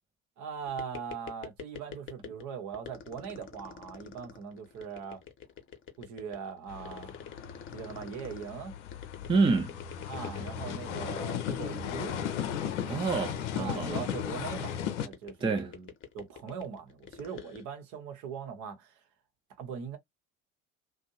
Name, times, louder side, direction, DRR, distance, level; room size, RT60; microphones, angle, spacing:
voice 1, 0.4-5.2 6.0-7.2 7.7-8.7 10.1-12.2 13.5-15.9 16.1-19.0 19.6-20.0, right 6 dB, 55° right, 1.0 m, -40 dB
sound 1, 0.7-2.4 2.7-17.6, left 7 dB, 35° left, 0.8 m, -46 dB
sound 2, 6.7-15.1, left 9 dB, 75° left, 0.5 m, -36 dB
voice 2, 9.3-9.7 12.9-14.1 15.4-15.7, right 4 dB, 15° right, 0.5 m, -28 dB
2.6 x 2.2 x 2.7 m
figure-of-eight pair, 60°, 36 cm